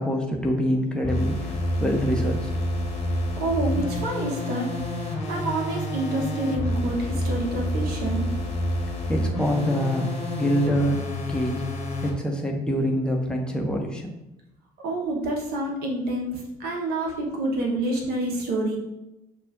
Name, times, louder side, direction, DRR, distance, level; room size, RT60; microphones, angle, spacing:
voice 1, 0.0-2.4 9.1-10.1 10.3-11.6 12.0-14.1, equal, 5° left, 0 dB, 1.0 m, -25 dB
sound 1, 1.0-12.2, left 1 dB, 35° left, 1.1 m, -28 dB
voice 2, 3.4-8.3 14.8-18.8, right 1 dB, 60° right, -1 dB, 0.9 m, -28 dB
6.8 x 2.5 x 2.4 m, 0.93 s
figure-of-eight pair, 50°, 18 cm